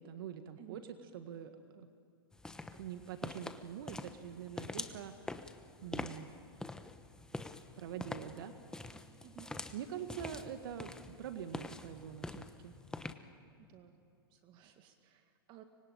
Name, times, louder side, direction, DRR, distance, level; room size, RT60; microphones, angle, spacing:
voice 1, 0.0-0.8 1.1-1.9 2.7-5.3 5.8-6.3 7.8-8.5 9.7-12.7, right 9 dB, 65° right, 8 dB, 1.6 m, -45 dB
voice 2, 0.6-0.9 9.2-9.5 13.6-13.9 14.3-15.6, right 13 dB, 40° right, 7 dB, 1.8 m, -57 dB
sound 1, 2.3-13.1, left 2 dB, 5° left, 1.1 m, -46 dB
25.0 x 22.0 x 9.0 m, 2.4 s
hypercardioid pair, 120°, 13 cm